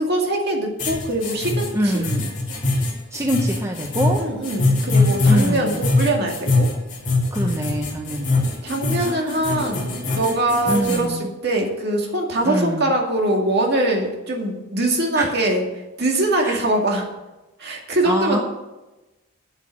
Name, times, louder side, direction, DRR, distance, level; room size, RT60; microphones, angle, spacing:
voice 1, 0.0-2.1 4.2-6.7 8.6-15.6 16.0-17.1 17.6-18.4, right 1 dB, 50° right, 1 dB, 2.3 m, -22 dB
sound 1, 0.8-11.0, left 2 dB, 35° left, 3.2 m, -22 dB
voice 2, 1.7-2.3 3.1-4.2 5.2-5.8 7.3-8.5 9.0-9.5 10.6-11.2 12.4-12.9 15.1-15.3 16.4-16.6 18.0-18.4, equal, 15° right, 1 dB, 0.8 m, -24 dB
8.3 x 8.0 x 8.7 m, 1.0 s
head